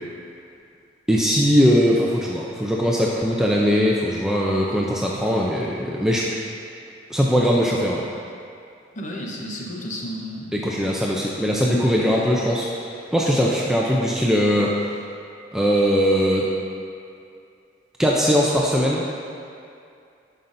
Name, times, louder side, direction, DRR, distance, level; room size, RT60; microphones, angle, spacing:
voice 1, 1.1-6.2 7.1-8.0 10.5-12.7 13.1-14.7 15.5-16.5 18.0-19.1, equal, 5° right, -4 dB, 0.4 m, -20 dB
voice 2, 8.9-10.5, equal, 45° left, -2 dB, 0.9 m, -32 dB
11.0 x 5.5 x 2.6 m, 2.5 s
head